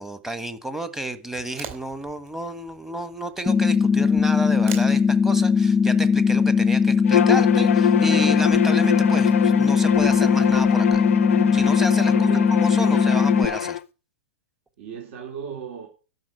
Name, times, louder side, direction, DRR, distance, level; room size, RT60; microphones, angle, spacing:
voice 1, 0.0-11.0 11.5-12.1 12.5-13.8, right 1 dB, 5° right, 1.4 m, -31 dB
sound 1, 1.3-7.7, right 7 dB, 35° right, 3.9 m, -44 dB
sound 2, 3.5-13.5, left 5 dB, 15° left, 0.7 m, -19 dB
Bowed string instrument, 7.0-13.8, left 10 dB, 80° left, 0.6 m, -25 dB
voice 2, 12.1-13.2 14.8-15.9, right 7 dB, 55° right, 4.0 m, -37 dB
12.0 x 6.3 x 9.1 m
hypercardioid pair, 130°, 7 cm